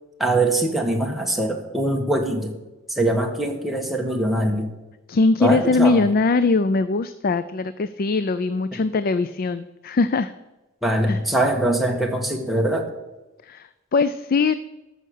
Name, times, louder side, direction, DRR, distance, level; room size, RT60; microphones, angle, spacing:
voice 1, 0.2-2.6 2.9-4.7 5.4-6.1 10.8-12.9, right 1 dB, ahead, 1 dB, 1.5 m, -22 dB
voice 2, 5.1-10.3 11.1-11.2 13.4-14.6, left 3 dB, 50° left, 13 dB, 0.4 m, -21 dB
13.5 x 6.5 x 6.5 m, 1.0 s
head